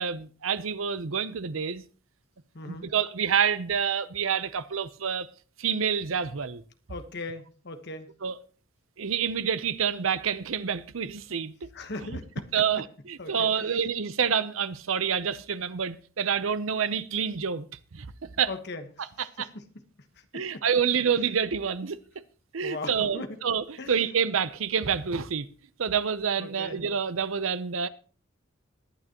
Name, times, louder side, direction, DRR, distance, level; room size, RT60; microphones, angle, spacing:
voice 1, 0.0-1.8 2.6-5.3 5.6-6.6 8.2-8.4 9.0-11.5 12.5-17.7 17.9-18.1 18.4-18.5 19.2-19.5 20.3-22.0 22.5-25.5 25.8-27.9, right 7 dB, 80° right, 0.7 m, -28 dB
voice 2, 2.5-2.9 6.9-8.1 11.7-12.5 13.2-13.8 18.5-19.7 20.3-20.6 22.6-23.4 23.8-24.1 26.4-26.9, left 2 dB, 55° left, 1.2 m, -39 dB
20.5 x 9.1 x 3.0 m
head